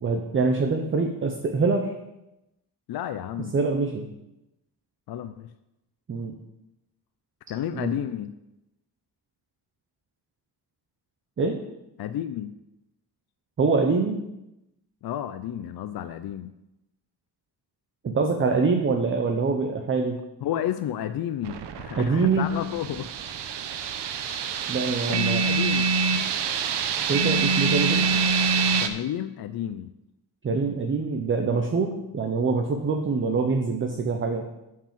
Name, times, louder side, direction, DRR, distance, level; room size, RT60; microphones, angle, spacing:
voice 1, 0.0-1.9 3.5-4.1 6.1-6.4 7.7-7.9 11.4-11.6 13.6-14.2 18.0-20.2 22.0-22.6 24.7-25.5 27.1-28.1 30.4-34.5, right 4 dB, 30° right, 3 dB, 0.7 m, -24 dB
voice 2, 2.9-3.6 5.1-5.5 7.5-8.3 12.0-12.5 15.0-16.5 20.4-23.1 25.1-25.9 28.8-29.9, left 10 dB, 65° left, 10 dB, 0.5 m, -31 dB
sound 1, 21.4-28.9, right 4 dB, 80° right, 0.9 m, -25 dB
9.0 x 4.8 x 7.4 m, 0.92 s
wide cardioid pair, 160°, 40 cm